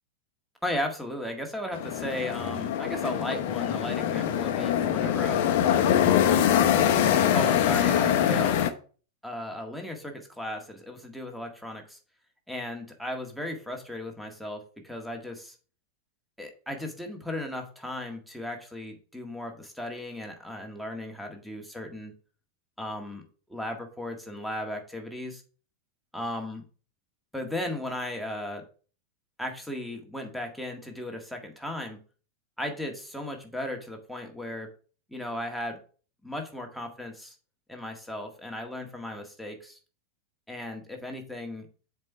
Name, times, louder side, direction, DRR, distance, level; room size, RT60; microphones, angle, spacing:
voice 1, 0.6-6.0 7.0-8.6 9.2-12.0 12.5-15.6 16.4-22.1 22.8-23.2 23.5-25.4 26.1-26.6 27.3-28.6 29.4-32.0 32.6-34.7 35.1-35.8 36.2-37.3 37.7-39.8 40.5-41.7, left 1 dB, ahead, 2 dB, 1.8 m, -36 dB
sound 1, 1.7-8.7, left 10 dB, 50° left, 0.9 m, -24 dB
7.4 x 4.7 x 5.6 m, 0.39 s
figure-of-eight pair, 90°, 0 cm